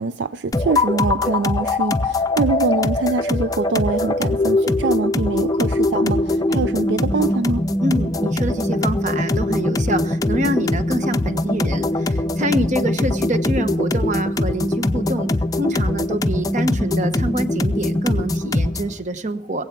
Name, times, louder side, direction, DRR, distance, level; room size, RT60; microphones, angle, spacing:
voice 1, 0.0-7.6, right 4 dB, 75° right, 0.4 m, -24 dB
sound 1, 0.5-19.0, left 2 dB, 20° left, 0.5 m, -21 dB
voice 2, 7.8-19.6, right 1 dB, 45° right, 1.0 m, -25 dB
20.5 x 8.1 x 5.9 m
head